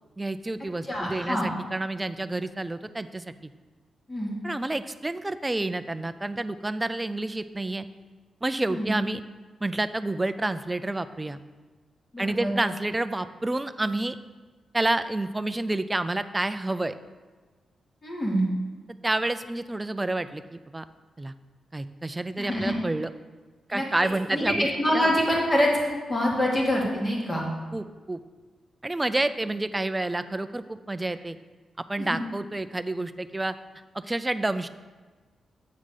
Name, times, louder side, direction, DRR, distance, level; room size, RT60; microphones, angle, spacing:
voice 1, 0.2-3.3 4.4-7.9 8.4-9.2 9.6-11.4 12.2-14.2 14.7-16.9 19.0-20.8 21.2-21.3 21.7-23.1 23.7-25.1 27.7-28.2 28.8-31.4 31.8-33.6 33.9-34.7, right 2 dB, 15° right, 11 dB, 0.3 m, -29 dB
voice 2, 0.9-1.5 4.1-4.4 8.7-9.0 12.1-12.6 18.0-18.5 22.4-22.7 23.7-23.8 24.3-27.5 32.0-32.2, equal, 20° left, -2 dB, 1.9 m, -25 dB
8.4 x 3.8 x 6.4 m, 1.4 s
wide cardioid pair, 115°, 0 cm